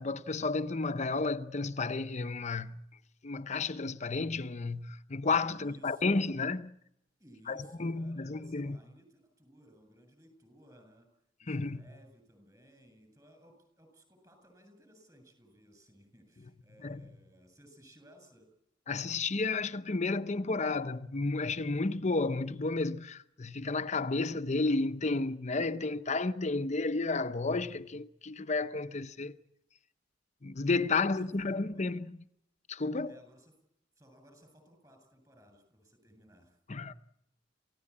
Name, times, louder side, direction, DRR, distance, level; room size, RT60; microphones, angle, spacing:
voice 1, 0.0-2.8 3.2-6.7 7.5-8.8 11.5-11.8 16.8-17.1 18.9-29.4 30.4-32.2 32.7-33.1 36.7-36.9, left 3 dB, 40° left, 0.8 m, -32 dB
voice 2, 5.4-6.3 7.2-11.1 11.4-18.5 30.8-31.8 33.0-33.5 34.0-36.6, equal, 20° right, 7.9 m, -60 dB
28.0 x 16.5 x 8.7 m
head